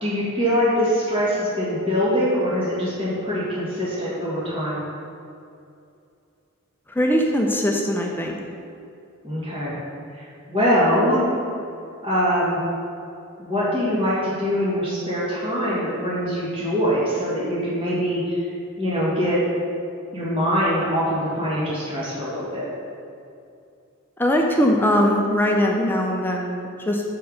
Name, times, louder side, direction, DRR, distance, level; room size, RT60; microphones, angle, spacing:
voice 1, 0.0-4.8 9.2-9.7 10.1-11.3 12.0-12.6 13.4-18.4 18.8-19.4 20.1-22.7, equal, 25° right, -8 dB, 1.7 m, -23 dB
voice 2, 7.0-8.4 24.2-27.0, equal, 10° left, 1 dB, 0.5 m, -21 dB
5.6 x 4.5 x 6.4 m, 2.5 s
head